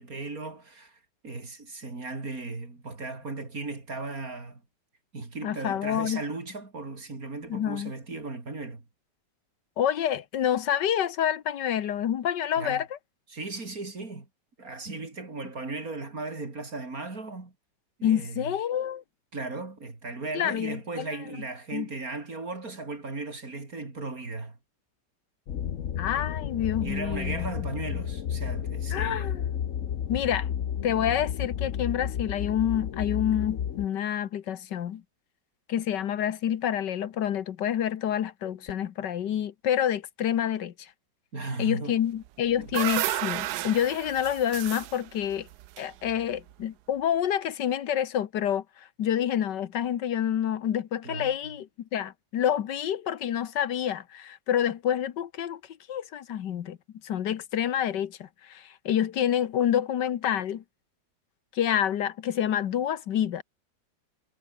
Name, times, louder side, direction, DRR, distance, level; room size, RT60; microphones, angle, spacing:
voice 1, 0.0-4.6 5.1-8.8 12.6-12.8 13.3-14.3 14.6-17.5 18.0-18.5 19.3-24.6 26.8-29.3 41.3-42.0 42.6-42.8 51.0-51.3, right 3 dB, 55° right, 4.4 m, -36 dB
voice 2, 5.4-6.2 7.5-7.9 9.8-12.9 18.0-19.0 20.3-21.1 21.7-21.9 26.0-27.7 27.9-28.0 28.9-29.5 30.1-30.5 30.8-35.0 35.7-40.9 41.6-45.5 45.8-55.6 55.9-56.8 57.0-60.6 61.5-63.4, left 10 dB, 75° left, 1.7 m, -28 dB
sound 1, 25.5-33.9, left 9 dB, 55° left, 1.2 m, -32 dB
sound 2, 42.3-46.5, right 15 dB, 75° right, 1.1 m, -33 dB
omnidirectional pair, 1.9 m